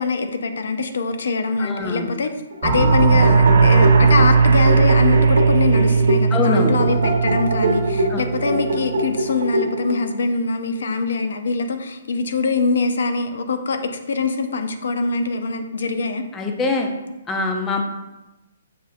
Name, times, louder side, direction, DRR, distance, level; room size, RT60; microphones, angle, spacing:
voice 1, 0.0-2.3 2.6-16.2, left 4 dB, 70° left, 7 dB, 0.5 m, -23 dB
voice 2, 1.6-2.1 6.3-6.7 8.1-8.3 16.3-16.9 17.3-17.8, left 4 dB, 10° left, 3 dB, 0.4 m, -23 dB
sound 1, 2.5-10.1, right 1 dB, 90° right, 0.8 m, -24 dB
sound 2, 2.6-9.0, right 5 dB, 40° right, 0.7 m, -17 dB
sound 3, 2.9-6.8, right 5 dB, 70° right, 0.4 m, -29 dB
7.0 x 2.4 x 2.4 m, 1.0 s
hypercardioid pair, 170°, 0 cm